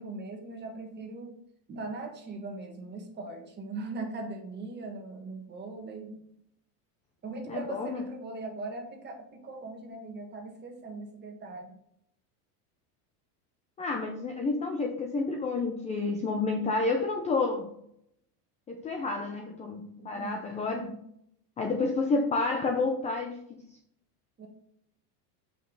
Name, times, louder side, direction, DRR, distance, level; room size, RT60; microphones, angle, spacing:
voice 1, 0.0-1.4 1.7-6.2 7.2-11.7 20.0-21.0 24.4-24.5, right 3 dB, 20° right, 3 dB, 1.5 m, -40 dB
voice 2, 7.5-8.0 13.8-17.7 18.7-20.9 21.6-23.6, left 3 dB, 15° left, 3 dB, 0.5 m, -30 dB
7.5 x 5.5 x 3.9 m, 0.72 s
supercardioid pair, 150°, 48 cm